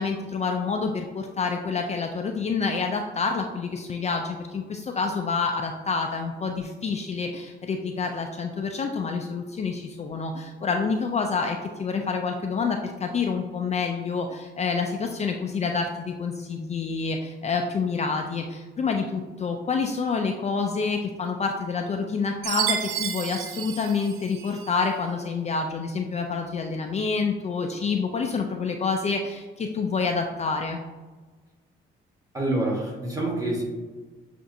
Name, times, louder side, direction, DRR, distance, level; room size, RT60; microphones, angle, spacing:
voice 1, 0.0-30.8, left 4 dB, 35° left, 3 dB, 0.4 m, -28 dB
Chime, 22.4-24.8, right 9 dB, 90° right, 0.4 m, -31 dB
voice 2, 32.3-33.6, right 1 dB, 15° right, -3 dB, 1.3 m, -26 dB
6.9 x 2.5 x 2.6 m, 1.3 s
cardioid pair, 90°, 20 cm